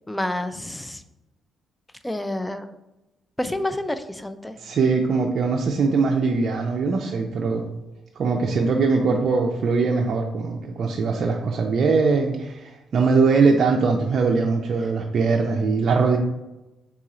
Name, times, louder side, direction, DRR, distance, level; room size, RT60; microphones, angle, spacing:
voice 1, 0.1-1.0 2.0-2.7 3.4-4.5, left 1 dB, 10° left, 10 dB, 0.4 m, -28 dB
voice 2, 4.6-7.6 8.2-16.2, right 4 dB, 55° right, 1 dB, 0.4 m, -21 dB
3.7 x 3.0 x 3.7 m, 0.97 s
cardioid pair, 90°, 0 cm